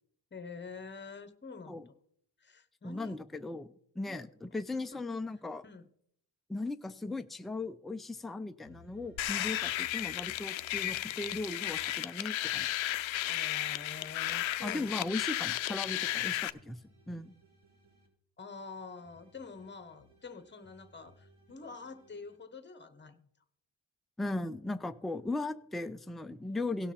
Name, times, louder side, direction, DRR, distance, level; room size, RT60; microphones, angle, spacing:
voice 1, 0.3-1.9 2.4-3.2 4.1-4.3 4.9-5.0 5.6-5.9 13.3-14.9 18.4-23.3, left 4 dB, 25° left, 11 dB, 1.0 m, -47 dB
voice 2, 2.8-5.6 6.5-12.7 14.6-16.8 17.1-17.4 24.2-26.9, left 2 dB, ahead, 8 dB, 0.4 m, -37 dB
sound 1, 8.6-12.1 12.5-18.1 18.5-22.4, left 1 dB, 90° right, 3.1 m, -61 dB
sound 2, 9.2-16.5, left 14 dB, 75° left, 0.6 m, -34 dB
17.5 x 5.9 x 4.2 m, 0.70 s
cardioid pair, 100°, 47 cm